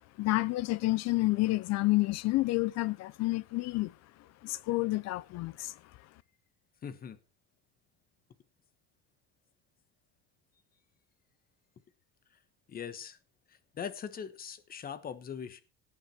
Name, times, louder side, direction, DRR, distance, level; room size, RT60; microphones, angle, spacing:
voice 1, 0.2-3.9 4.4-5.7, left 19 dB, 50° left, 0.8 m, -29 dB
voice 2, 6.8-7.2 12.7-13.2 13.7-15.6, left 7 dB, 25° left, 1.3 m, -41 dB
17.5 x 7.6 x 4.4 m
cardioid pair, 165°, 35 cm